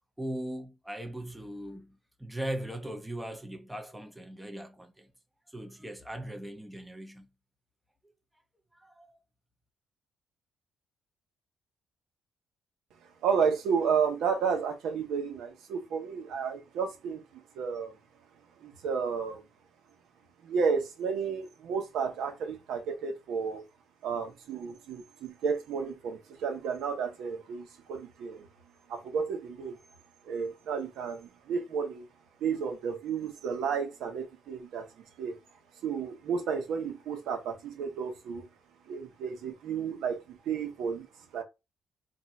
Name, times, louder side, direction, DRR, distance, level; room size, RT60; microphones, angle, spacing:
voice 1, 0.2-5.1 5.5-7.3 8.8-9.2, right 1 dB, 5° right, 0.6 m, -39 dB
voice 2, 13.2-17.2 17.6-17.9 18.6-19.4 20.4-23.6 24.0-28.5 28.9-29.8 30.3-32.1 32.4-34.9 35.2-35.4 35.8-38.4 38.9-41.1 41.3-41.4, right 6 dB, 85° right, 1.1 m, -32 dB
3.7 x 2.6 x 4.3 m
cardioid pair, 150°, 0 cm